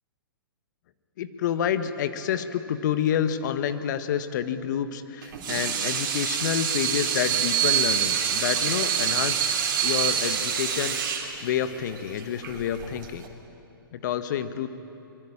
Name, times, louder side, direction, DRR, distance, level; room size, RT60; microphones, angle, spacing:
voice 1, 1.2-9.6 9.8-13.3 13.9-14.7, left 9 dB, 55° left, 10 dB, 1.6 m, -28 dB
Water tap faucet / Sink (filling or washing), 5.2-13.3, right 8 dB, 55° right, 3.6 m, -26 dB
24.0 x 22.5 x 8.9 m, 2.7 s
hypercardioid pair, 120°, 12 cm